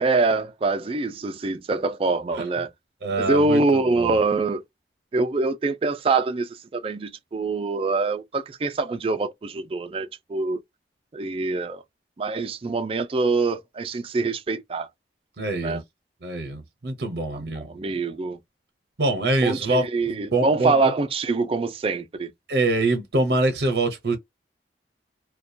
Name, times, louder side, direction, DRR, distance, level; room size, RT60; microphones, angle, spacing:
voice 1, 0.0-2.7 3.2-4.6 5.1-10.6 11.1-11.8 12.2-14.9 15.6-15.8 17.3-18.4 19.4-22.3, right 3 dB, 30° right, 0.3 m, -24 dB
voice 2, 3.0-4.2 15.4-15.8 16.2-17.8 19.0-20.9 22.5-24.2, right 2 dB, 60° right, 0.6 m, -25 dB
2.2 x 2.2 x 2.6 m
head